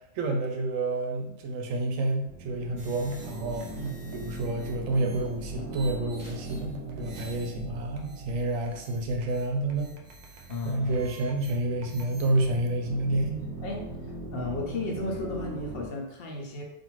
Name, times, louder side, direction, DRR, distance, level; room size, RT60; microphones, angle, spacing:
voice 1, 0.1-3.7 4.1-10.0 10.3-13.5, right 2 dB, 90° right, 3 dB, 1.0 m, -29 dB
sound 1, 2.2-15.9, right 2 dB, 50° right, 0.8 m, -41 dB
sound 2, 2.8-12.3, right 3 dB, 65° right, 0.4 m, -50 dB
voice 2, 3.8-4.2 10.5-11.1 13.6-13.9 14.3-16.6, left 2 dB, 60° left, 0 dB, 0.7 m, -34 dB
2.6 x 2.5 x 3.0 m, 0.81 s
omnidirectional pair, 1.3 m